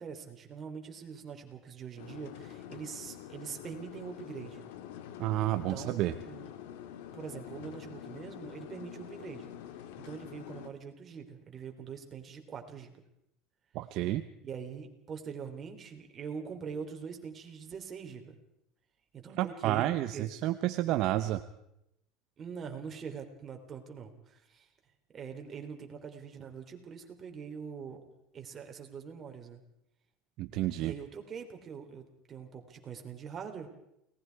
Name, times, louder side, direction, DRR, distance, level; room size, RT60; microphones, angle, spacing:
voice 1, 0.0-4.6 5.5-6.5 7.1-9.5 10.0-13.0 14.4-18.4 19.1-20.3 22.4-24.7 25.1-28.0 28.3-29.6 30.8-33.8, right 6 dB, 30° right, 4 dB, 3.6 m, -43 dB
sound 1, 2.0-10.7, left 10 dB, 85° left, 1.9 m, -46 dB
voice 2, 5.2-6.1 13.7-14.2 19.4-21.4 30.4-30.9, right 15 dB, 55° right, 9 dB, 0.9 m, -30 dB
29.5 x 19.0 x 4.8 m, 0.81 s
supercardioid pair, 135°, 0 cm